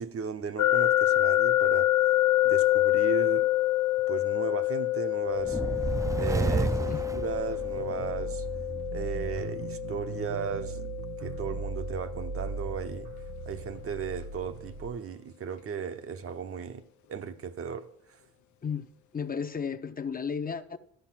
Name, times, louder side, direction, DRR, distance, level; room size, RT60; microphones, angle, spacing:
voice 1, 0.0-2.2 2.4-3.5 4.1-5.6 6.1-8.5 8.9-10.9 11.2-13.1 13.5-16.8 17.1-18.2, right 7 dB, 50° right, 0.8 m, -36 dB
sound 1, 0.6-13.5, left 15 dB, 70° left, 0.5 m, -27 dB
sound 2, 5.4-8.1, right 3 dB, 10° right, 0.4 m, -30 dB
sound 3, 5.8-14.9, right 5 dB, 65° right, 1.0 m, -39 dB
voice 2, 18.6-20.8, left 6 dB, 30° left, 0.6 m, -34 dB
12.5 x 5.4 x 5.9 m
cardioid pair, 90°, 30 cm